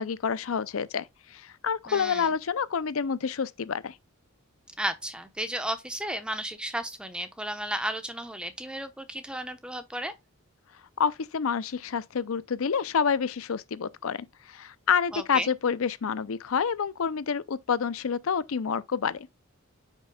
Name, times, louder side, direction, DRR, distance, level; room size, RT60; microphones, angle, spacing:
voice 1, 0.0-4.0 11.0-19.3, left 6 dB, 75° left, 0.5 m, -28 dB
voice 2, 1.9-2.3 4.8-10.1 15.1-15.5, right 1 dB, 5° right, 0.9 m, -33 dB
9.6 x 6.0 x 2.3 m
head